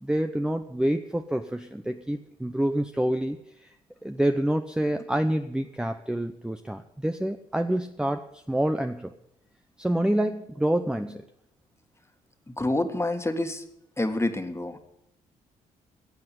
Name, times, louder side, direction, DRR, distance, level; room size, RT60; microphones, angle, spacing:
voice 1, 0.0-3.7 4.0-9.1 9.8-11.3, right 1 dB, 5° right, 7 dB, 0.8 m, -27 dB
voice 2, 12.6-13.6 14.0-14.8, left 2 dB, 15° left, 7 dB, 1.9 m, -27 dB
15.0 x 7.8 x 8.9 m, 0.78 s
hypercardioid pair, 50°, 18 cm